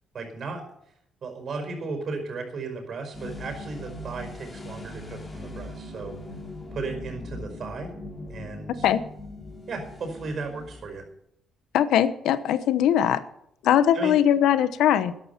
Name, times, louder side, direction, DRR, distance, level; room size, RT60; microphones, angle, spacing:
voice 1, 0.1-0.6 1.2-6.1 6.7-7.9 8.3-8.9 9.7-11.0 13.9-14.2, right 3 dB, 55° right, 5 dB, 5.2 m, -35 dB
sound 1, 3.1-11.0, left 1 dB, 25° left, 4.1 m, -40 dB
voice 2, 11.7-13.2 13.6-15.1, left 10 dB, 85° left, 14 dB, 0.9 m, -21 dB
13.0 x 11.0 x 5.8 m, 0.75 s
cardioid pair, 90°, 0 cm